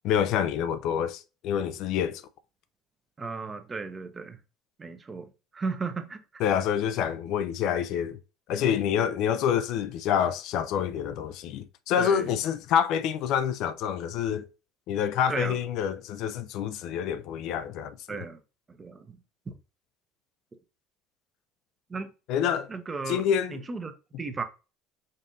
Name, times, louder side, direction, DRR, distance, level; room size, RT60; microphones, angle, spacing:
voice 1, 0.0-2.2 6.4-8.2 8.5-14.5 14.9-18.2 22.3-22.7 23.1-23.6, left 9 dB, 65° left, 0.4 m, -27 dB
voice 2, 3.2-4.4 4.8-6.2 12.0-12.3 15.3-15.6 18.1-18.4 18.7-19.2 19.5-19.6 21.9-22.1 22.7-23.2 23.5-23.9 24.2-24.4, right 4 dB, 30° right, 0.7 m, -35 dB
5.3 x 2.5 x 2.6 m
hypercardioid pair, 75°, 0 cm